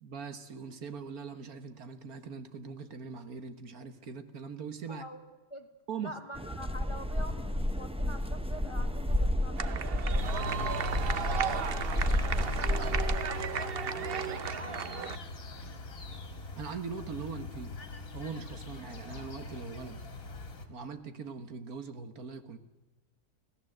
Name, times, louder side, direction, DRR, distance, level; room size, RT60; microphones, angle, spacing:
voice 1, 0.0-5.0 5.9-6.1 16.6-17.8 18.1-20.0 20.7-22.6, right 5 dB, 65° right, 9 dB, 1.8 m, -41 dB
voice 2, 4.9-5.2 5.5-5.7 6.0-9.6 10.1-14.8, equal, 20° left, 6 dB, 1.5 m, -46 dB
sound 1, 6.3-13.1, left 1 dB, 5° right, 0.9 m, -31 dB
sound 2, 9.6-15.2, right 7 dB, 45° right, 0.9 m, -35 dB
sound 3, 10.2-20.7, left 3 dB, 60° left, 2.6 m, -41 dB
25.5 x 16.5 x 7.9 m, 1.2 s
omnidirectional pair, 1.7 m